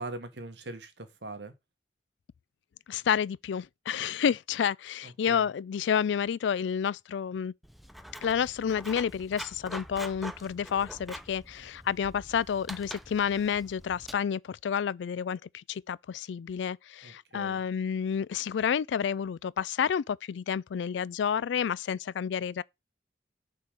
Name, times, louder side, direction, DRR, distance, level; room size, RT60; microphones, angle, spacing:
voice 1, 0.0-1.5 5.0-5.5 17.0-17.6, right 2 dB, 70° right, 1.3 m, -41 dB
voice 2, 2.9-7.5 8.2-22.6, left 7 dB, 80° left, 0.3 m, -30 dB
Writing, 7.6-14.1, equal, ahead, 0.3 m, -45 dB
6.7 x 3.7 x 6.2 m
head